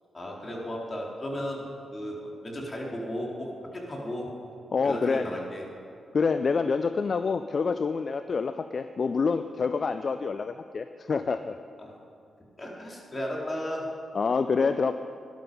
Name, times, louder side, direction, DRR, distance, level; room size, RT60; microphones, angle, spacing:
voice 1, 0.1-4.3 4.8-5.6 11.8-11.9 12.6-13.9, equal, 35° left, -2 dB, 3.9 m, -35 dB
voice 2, 4.7-5.2 6.1-11.6 14.1-14.9, left 5 dB, 55° left, 10 dB, 0.4 m, -27 dB
13.5 x 11.5 x 5.4 m, 2.5 s
supercardioid pair, 45°, 0 cm